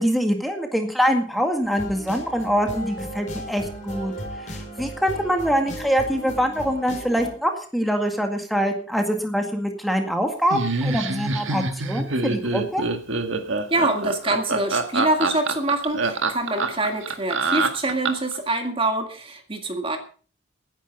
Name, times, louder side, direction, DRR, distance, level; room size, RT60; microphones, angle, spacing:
voice 1, 0.0-12.8, equal, ahead, 4 dB, 1.9 m, -24 dB
sound 1, 1.6-7.3, equal, 40° left, 5.0 m, -35 dB
Laughter, 10.5-18.4, right 3 dB, 75° right, 1.8 m, -25 dB
voice 2, 13.7-20.0, right 2 dB, 25° right, 5 dB, 1.9 m, -25 dB
17.0 x 10.5 x 5.3 m, 0.40 s
head